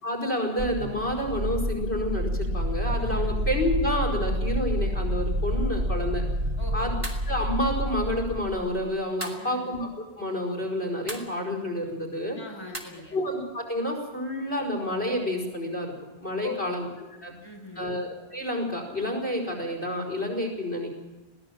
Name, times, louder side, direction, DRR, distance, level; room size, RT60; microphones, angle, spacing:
voice 1, 0.0-6.2 6.7-6.9 7.3-9.9 10.2-12.4 13.1-15.9 16.2-16.9 17.2-17.3 17.8-20.9, left 1 dB, 80° left, 3 dB, 5.4 m, -29 dB
sound 1, 0.6-8.8, equal, 75° right, 1.8 m, -28 dB
voice 2, 3.0-3.4 6.6-7.0 9.3-9.7 12.4-13.2 16.4-16.8 17.3-17.9, left 4 dB, 25° left, 0 dB, 4.6 m, -40 dB
sound 2, 7.0-7.3 9.2-9.5 11.1-11.4 12.7-12.8, right 1 dB, 30° right, 2.7 m, -36 dB
21.5 x 17.0 x 7.7 m, 1.1 s
omnidirectional pair, 1.1 m